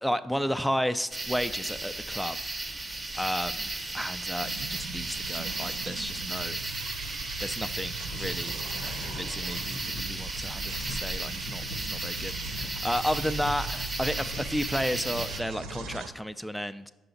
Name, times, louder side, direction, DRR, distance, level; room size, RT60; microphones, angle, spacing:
voice 1, 0.0-2.4 3.1-3.7 3.9-6.6 7.4-16.9, equal, ahead, 10 dB, 0.3 m, -32 dB
sound 1, 1.1-15.4, right 2 dB, 30° right, 0.7 m, -35 dB
sound 2, 4.4-16.1, right 5 dB, 85° right, 0.4 m, -41 dB
sound 3, 8.1-16.0, left 3 dB, 75° left, 0.6 m, -43 dB
5.7 x 4.8 x 3.9 m, 1.1 s
supercardioid pair, 65°, 0 cm